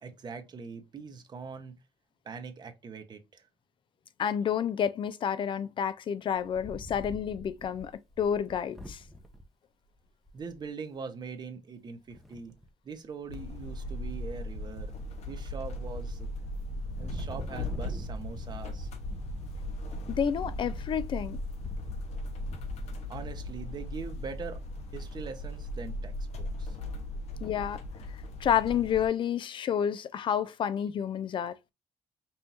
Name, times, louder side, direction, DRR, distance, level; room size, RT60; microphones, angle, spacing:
voice 1, 0.0-1.7 2.2-3.4 10.3-12.5 12.8-14.9 15.3-16.3 17.0-18.9 22.8-24.6 24.9-26.8, right 5 dB, 40° right, 0.9 m, -42 dB
voice 2, 4.2-7.9 8.2-9.0 20.2-21.4 27.4-27.8 28.4-31.6, left 8 dB, 45° left, 0.4 m, -29 dB
Wind, 6.3-9.4 10.0-10.1 10.3-10.6 12.1-12.7 13.2-13.7 14.0-15.2 15.7-16.1 16.4-24.6, equal, ahead, 0.8 m, -44 dB
sound 1, 13.3-29.1, left 1 dB, 70° left, 0.9 m, -38 dB
5.5 x 2.6 x 2.8 m
cardioid pair, 115°, 11 cm